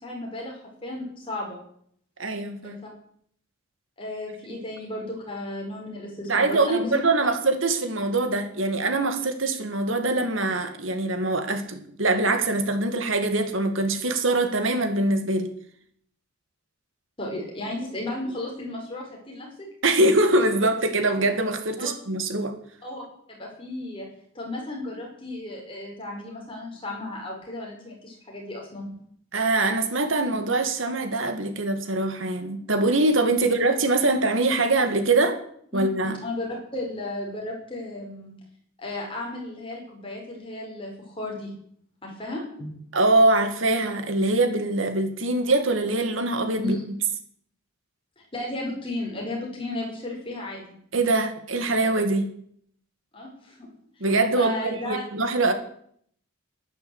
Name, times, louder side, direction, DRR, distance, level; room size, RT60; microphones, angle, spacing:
voice 1, 0.0-1.6 2.6-2.8 4.0-6.9 17.2-19.5 21.8-21.9 22.8-23.0 23.3-24.1 24.3-28.9 35.7-38.3 38.8-41.5 42.0-42.7 46.6-46.8 48.3-50.8 53.1-53.7 54.4-55.0, left 1 dB, 25° left, -1 dB, 5.5 m, -34 dB
voice 2, 2.2-2.8 4.5-4.6 6.3-15.5 19.8-22.5 29.3-35.4 35.7-36.2 42.9-46.8 50.9-52.3 54.0-55.5, right 2 dB, 70° right, 7 dB, 2.1 m, -23 dB
11.5 x 11.5 x 8.2 m, 0.65 s
head